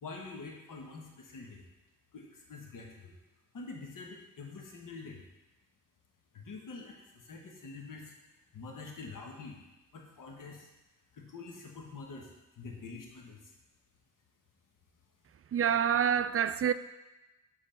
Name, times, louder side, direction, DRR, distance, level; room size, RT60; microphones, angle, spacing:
voice 1, 0.0-1.6 2.1-3.2 3.5-5.2 6.3-8.1 8.5-9.6 9.9-10.7 11.1-13.4, left 4 dB, 75° left, 1.2 m, -46 dB
voice 2, 15.5-16.7, right 8 dB, 45° right, 0.4 m, -27 dB
6.9 x 5.3 x 4.4 m
cardioid pair, 55°, 33 cm